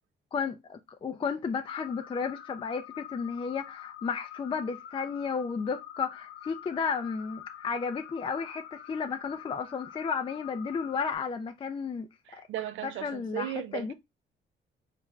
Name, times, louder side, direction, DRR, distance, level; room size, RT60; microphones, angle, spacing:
voice 1, 0.3-12.5 12.8-13.9, left 5 dB, 25° left, 0.4 m, -33 dB
sound 1, 1.8-11.2, left 11 dB, 85° left, 0.7 m, -47 dB
voice 2, 12.3-13.9, right 13 dB, 80° right, 0.5 m, -36 dB
4.3 x 2.5 x 3.1 m
cardioid pair, 90°, 20 cm